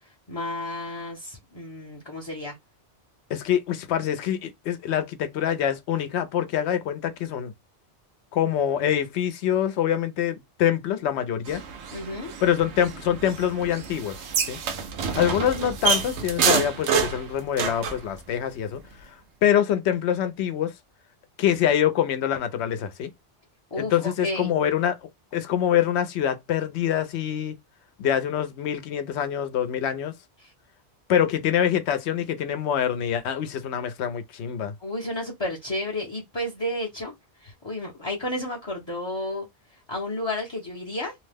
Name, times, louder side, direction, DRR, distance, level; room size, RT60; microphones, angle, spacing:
voice 1, 0.3-2.6 11.9-12.3 23.7-24.5 30.4-30.5 34.8-39.5 39.9-41.1, left 1 dB, 30° left, 0.6 m, -32 dB
voice 2, 3.3-7.5 8.3-11.6 12.4-14.2 14.5-14.6 15.1-18.8 19.4-20.7 21.4-23.1 23.8-25.0 25.3-27.6 28.0-30.1 31.1-34.7, left 9 dB, 80° left, 0.9 m, -25 dB
sound 1, 11.5-18.0, right 6 dB, 85° right, 0.9 m, -28 dB
2.7 x 2.1 x 3.3 m
omnidirectional pair, 1.1 m